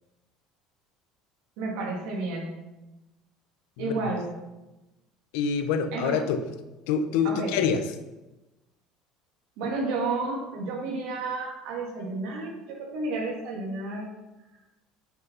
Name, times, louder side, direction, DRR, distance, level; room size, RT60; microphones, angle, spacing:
voice 1, 1.6-2.5 3.8-4.3 5.9-6.2 7.2-7.5 9.6-14.1, right 3 dB, 75° right, -1 dB, 2.8 m, -31 dB
voice 2, 3.8-4.1 5.3-6.4 6.9-7.8, left 6 dB, 85° left, 9 dB, 0.9 m, -26 dB
8.3 x 6.0 x 5.6 m, 1.0 s
cardioid pair, 140°, 0 cm